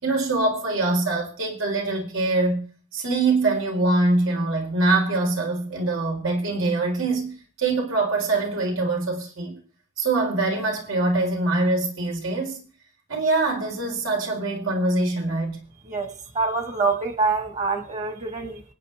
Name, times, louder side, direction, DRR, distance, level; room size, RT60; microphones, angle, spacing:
voice 1, 0.0-2.6 2.9-7.3 7.6-9.5 10.0-12.6 13.1-15.6, right 2 dB, 85° right, 4.3 m, -23 dB
voice 2, 15.9-18.6, right 4 dB, 35° right, 1.5 m, -26 dB
25.5 x 9.6 x 3.4 m
head